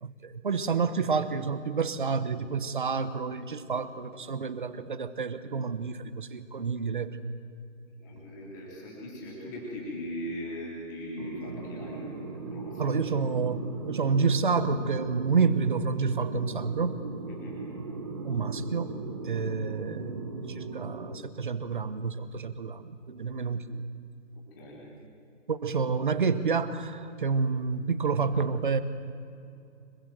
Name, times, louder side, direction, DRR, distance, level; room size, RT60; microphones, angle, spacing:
voice 1, 0.0-7.2 12.8-17.0 18.2-18.9 19.2-23.8 25.5-28.8, right 5 dB, 40° right, 12 dB, 1.2 m, -29 dB
voice 2, 8.0-12.1 12.5-13.2 17.3-17.5 24.6-24.8, left 1 dB, 15° left, -5 dB, 3.6 m, -39 dB
sound 1, 11.2-21.1, right 3 dB, 20° right, 1.1 m, -38 dB
26.0 x 23.0 x 7.7 m, 2.5 s
hypercardioid pair, 180°, 39 cm